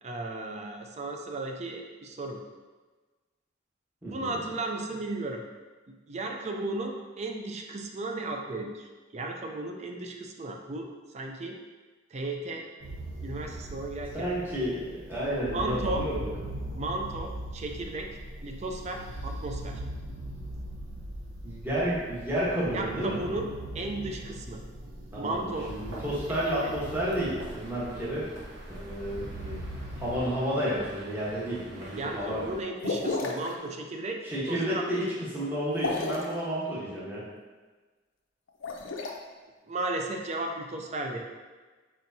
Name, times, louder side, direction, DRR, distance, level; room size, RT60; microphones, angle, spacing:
voice 1, 0.0-2.4 4.0-5.4 5.9-8.8 9.1-11.6 12.1-12.7 13.2-14.3 15.5-16.1 16.7-18.1 18.4-19.8 22.7-24.6 25.2-25.7 26.5-26.7 32.0-34.2 34.5-34.8 39.7-41.2, right 2 dB, 35° right, 3 dB, 0.4 m, -35 dB
voice 2, 4.0-4.4 14.1-16.5 21.4-23.2 25.1-28.3 28.7-29.6 30.0-32.4 34.2-37.2, equal, 10° right, -9 dB, 1.0 m, -31 dB
sound 1, 12.8-30.2, right 1 dB, 80° right, 0.7 m, -40 dB
sound 2, 25.5-32.6, right 1 dB, 60° right, 1.1 m, -47 dB
sound 3, 32.8-33.5 35.7-36.3 38.5-39.1, left 3 dB, 80° left, 0.6 m, -31 dB
4.4 x 4.4 x 2.7 m, 1.3 s
head